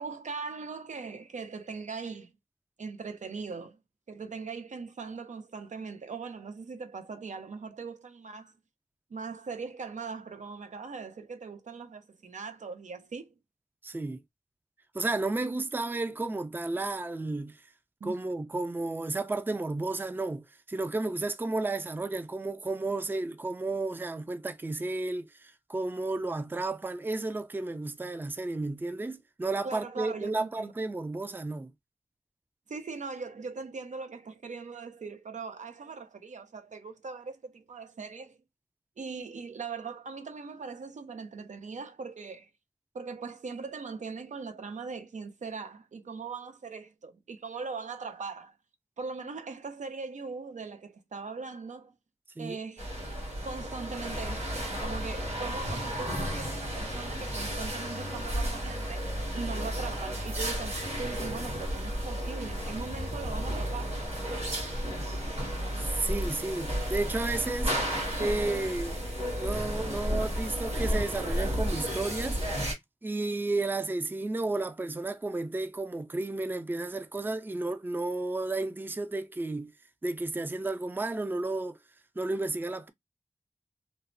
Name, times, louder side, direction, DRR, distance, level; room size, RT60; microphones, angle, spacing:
voice 1, 0.0-2.3 2.8-3.8 4.1-8.5 9.1-13.3 18.0-18.2 29.6-30.7 32.7-38.4 39.0-42.5 42.9-48.6 49.0-51.9 52.4-52.9 53.4-64.0, right 4 dB, 80° right, 0.5 m, -40 dB
voice 2, 13.8-14.2 14.9-17.6 18.0-31.7 52.4-52.6 65.8-67.8 68.2-69.0 69.4-72.4 73.0-79.7 80.0-81.8 82.2-82.9, right 2 dB, 15° right, 0.3 m, -32 dB
sound 1, 52.8-72.7, equal, 60° right, 1.7 m, -33 dB
3.1 x 2.1 x 2.5 m
wide cardioid pair, 65°, 12 cm